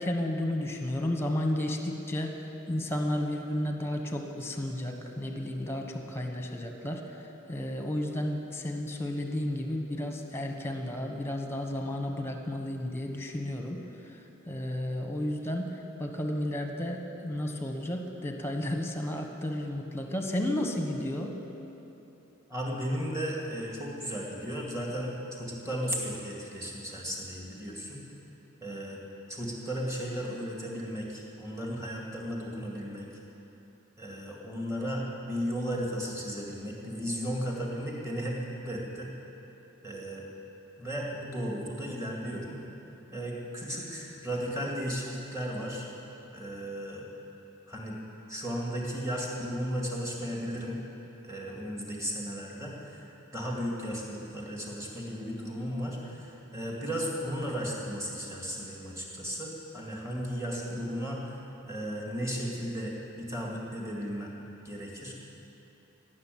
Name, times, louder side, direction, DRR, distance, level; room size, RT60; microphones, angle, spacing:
voice 1, 0.0-2.4 2.7-7.0 7.5-13.8 14.5-21.3, left 1 dB, 10° left, 3 dB, 1.1 m, -32 dB
voice 2, 22.5-25.1 25.4-28.0 28.6-29.0 29.3-33.1 34.0-38.4 38.6-39.1 39.8-40.2 40.8-42.6 43.1-45.9 46.3-47.1 47.7-48.0 48.3-50.8 51.2-53.1 53.3-64.3 64.6-65.1, equal, 15° right, -2 dB, 2.1 m, -35 dB
16.0 x 6.8 x 9.3 m, 3.0 s
head